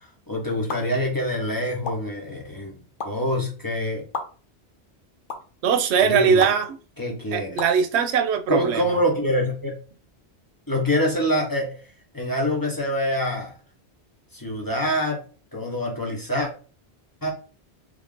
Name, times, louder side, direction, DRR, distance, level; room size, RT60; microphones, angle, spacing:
voice 1, 0.3-2.8 3.0-4.0 6.0-6.5 7.0-7.6 8.5-9.7 10.7-11.7 12.1-13.5 14.3-15.2 15.5-16.5 17.2-17.3, equal, 20° left, 0.8 m, -25 dB
sound 1, 0.7-0.8 1.8-1.9 3.0-3.1 4.1-4.2 5.3-5.4 6.4-6.5 7.6-7.7, left 4 dB, 60° left, 0.8 m, -29 dB
voice 2, 5.6-6.8 7.3-8.8, right 7 dB, 90° right, 0.8 m, -20 dB
3.3 x 2.5 x 3.6 m
omnidirectional pair, 1.1 m